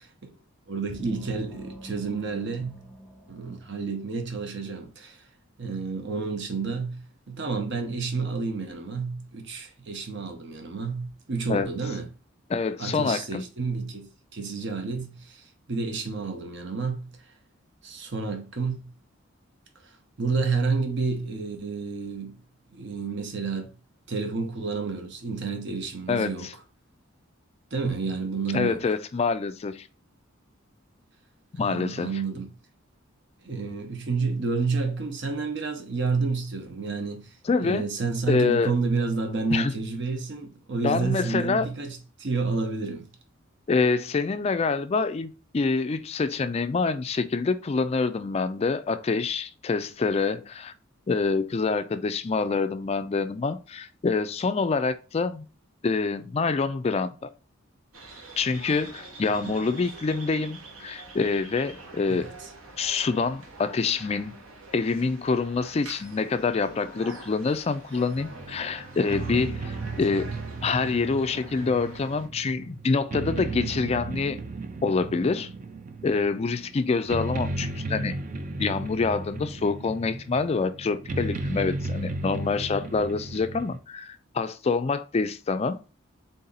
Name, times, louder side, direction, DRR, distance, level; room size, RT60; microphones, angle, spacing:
voice 1, 0.7-2.9 3.3-5.2 5.6-12.1 12.8-15.4 15.7-17.1 17.8-18.9 20.2-22.4 22.7-23.7 24.1-26.5 27.7-28.8 31.5-32.5 33.4-37.3 37.6-43.1 59.3-59.5 62.1-62.3, right 4 dB, 55° right, 0.8 m, -30 dB
sound 1, 0.9-4.4, equal, 5° left, 1.1 m, -46 dB
voice 2, 12.5-13.4 26.1-26.5 28.5-29.9 31.6-32.1 37.5-37.8 38.3-38.7 39.5-39.7 40.8-41.7 43.7-50.7 51.1-55.5 55.8-57.3 58.4-62.3 62.8-64.4 64.7-70.3 70.6-74.4 74.8-75.5 76.0-78.2 78.6-85.8, left 4 dB, 30° left, 0.3 m, -26 dB
sound 2, 57.9-72.3, right 2 dB, 75° right, 1.0 m, -46 dB
sound 3, 68.2-83.8, right 2 dB, 40° right, 0.4 m, -35 dB
3.9 x 2.8 x 3.9 m
head